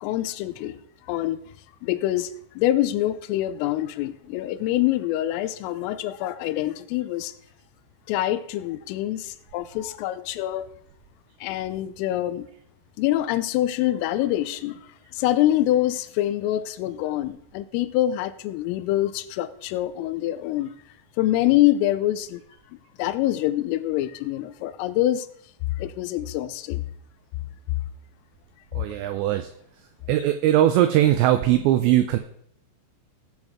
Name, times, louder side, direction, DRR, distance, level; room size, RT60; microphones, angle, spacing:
voice 1, 0.0-1.4 1.8-7.3 8.1-10.7 11.4-12.5 13.0-20.7 21.2-22.4 23.0-25.3 25.8-26.8, left 14 dB, 85° left, 13 dB, 3.3 m, -25 dB
voice 2, 28.7-29.5 30.1-32.2, right 13 dB, 85° right, 8 dB, 2.5 m, -20 dB
18.0 x 7.7 x 3.6 m, 0.67 s
omnidirectional pair, 5.7 m